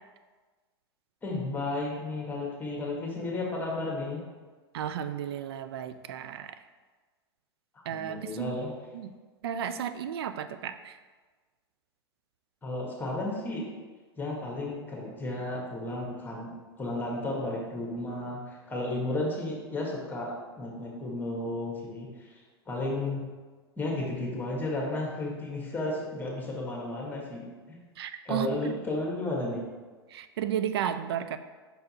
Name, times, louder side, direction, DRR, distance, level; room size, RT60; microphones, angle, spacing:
voice 1, 1.2-4.2 7.7-8.7 12.6-13.7 14.2-16.5 16.8-23.2 23.8-27.8 28.2-29.7, left 2 dB, 15° left, -2 dB, 1.6 m, -33 dB
voice 2, 4.7-6.6 7.9-8.6 8.9-9.1 9.4-11.0 28.0-28.8 30.1-31.4, right 9 dB, 70° right, 11 dB, 0.4 m, -33 dB
5.5 x 4.3 x 4.2 m, 1.4 s
hypercardioid pair, 100°, 14 cm